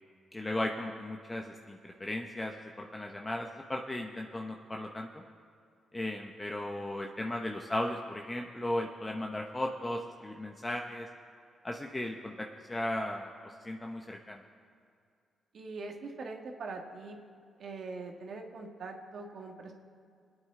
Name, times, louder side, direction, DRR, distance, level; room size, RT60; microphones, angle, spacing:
voice 1, 0.3-5.2 5.9-11.1 11.6-14.4, left 1 dB, 20° left, 2 dB, 0.9 m, -36 dB
voice 2, 15.5-17.2 17.6-19.7, right 3 dB, 65° right, 2 dB, 1.6 m, -42 dB
26.0 x 8.8 x 3.8 m, 2.3 s
cardioid pair, 70°, 0 cm